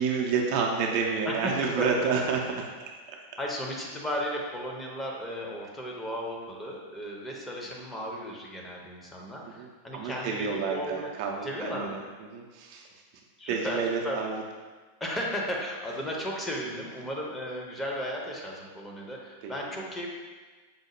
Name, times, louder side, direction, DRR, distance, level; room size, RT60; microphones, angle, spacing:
voice 1, 0.0-2.7 9.5-9.7 9.9-12.9 13.5-14.4 19.4-19.8, right 5 dB, 45° right, 0 dB, 0.4 m, -29 dB
voice 2, 1.8-2.1 3.4-11.1 11.4-12.0 13.4-14.2 15.0-20.1, equal, 10° left, -2 dB, 0.6 m, -35 dB
4.9 x 2.0 x 3.0 m, 1.4 s
figure-of-eight pair, 90°, 0 cm